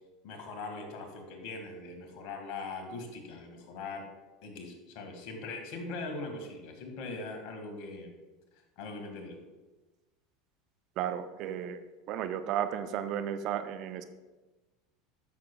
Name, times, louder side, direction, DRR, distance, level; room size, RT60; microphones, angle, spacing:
voice 1, 0.2-4.0 4.4-8.1 8.8-9.4, left 3 dB, 60° left, 3 dB, 1.9 m, -41 dB
voice 2, 11.0-11.8 12.1-14.0, right 9 dB, 55° right, 10 dB, 0.6 m, -33 dB
13.0 x 6.7 x 2.3 m, 1.2 s
hypercardioid pair, 85°, 0 cm